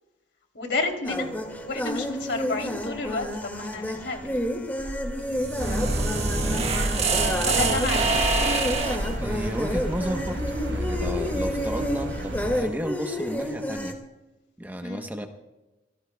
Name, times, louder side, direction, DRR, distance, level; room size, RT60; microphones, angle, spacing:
voice 1, 0.5-1.3 1.6-4.3 6.5-8.2 14.8-15.1, left 3 dB, 65° left, 2 dB, 3.1 m, -31 dB
sound 1, 1.0-13.9, equal, 10° left, 2.0 m, -30 dB
sound 2, 5.3-9.1, right 3 dB, 35° right, 1.6 m, -26 dB
sound 3, 5.6-12.6, right 1 dB, 70° right, 2.5 m, -32 dB
voice 2, 9.2-10.4 10.7-14.0 14.6-15.3, equal, 10° right, 5 dB, 0.9 m, -33 dB
26.5 x 18.0 x 2.3 m, 1.0 s
head